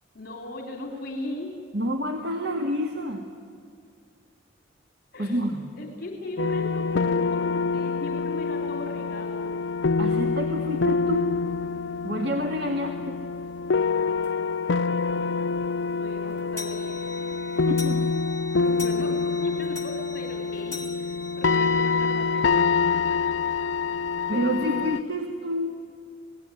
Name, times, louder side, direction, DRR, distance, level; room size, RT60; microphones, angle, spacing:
voice 1, 0.1-1.5 5.1-5.4 5.8-9.4 15.9-17.0 18.6-22.4, left 2 dB, 50° left, 2 dB, 3.0 m, -38 dB
voice 2, 1.7-3.2 5.2-5.6 10.0-11.4 12.0-13.2 17.5-18.0 24.3-25.8, equal, 60° right, 3 dB, 1.9 m, -28 dB
sound 1, 6.4-25.0, left 4 dB, 75° left, 0.5 m, -26 dB
sound 2, 14.2-14.4 14.9-15.0 15.3-15.4 15.7-22.1, left 3 dB, 15° left, 2.3 m, -41 dB
27.0 x 19.0 x 9.8 m, 2.4 s
head